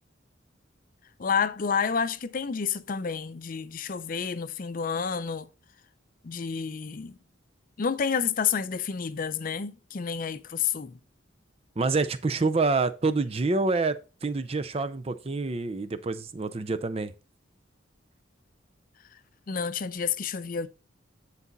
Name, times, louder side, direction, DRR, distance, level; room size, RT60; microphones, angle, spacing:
voice 1, 1.2-5.5 6.2-7.2 7.8-10.9 19.5-20.7, left 6 dB, 45° left, 0.5 m, -29 dB
voice 2, 11.8-17.1, right 3 dB, 30° right, 0.5 m, -27 dB
9.7 x 4.0 x 4.0 m
head